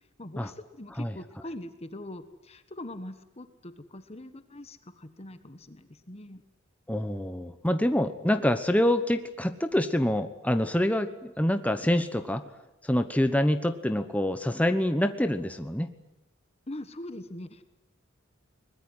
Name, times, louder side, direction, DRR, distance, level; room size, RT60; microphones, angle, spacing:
voice 1, 0.2-6.4 16.7-17.6, left 1 dB, 30° left, 10 dB, 1.4 m, -42 dB
voice 2, 6.9-12.4 12.8-15.9, left 1 dB, 5° left, 9 dB, 1.1 m, -26 dB
22.5 x 20.0 x 9.8 m, 0.95 s
head